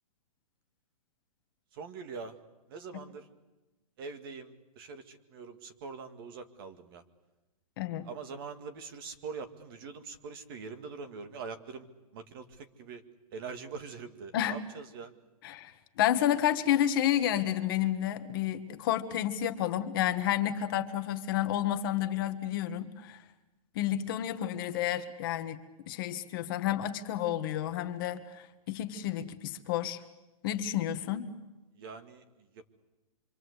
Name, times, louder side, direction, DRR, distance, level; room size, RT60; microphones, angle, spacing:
voice 1, 1.7-2.4 2.7-3.3 4.0-7.0 8.0-11.9 12.1-13.0 13.3-15.1 31.7-32.7, right 5 dB, 35° right, 8 dB, 2.1 m, -43 dB
voice 2, 7.8-8.1 14.3-14.6 15.4-23.2 23.7-25.6 25.9-30.0 30.4-31.3, left 11 dB, 35° left, 8 dB, 1.5 m, -30 dB
26.5 x 25.5 x 8.2 m, 1.1 s
hypercardioid pair, 170°, 19 cm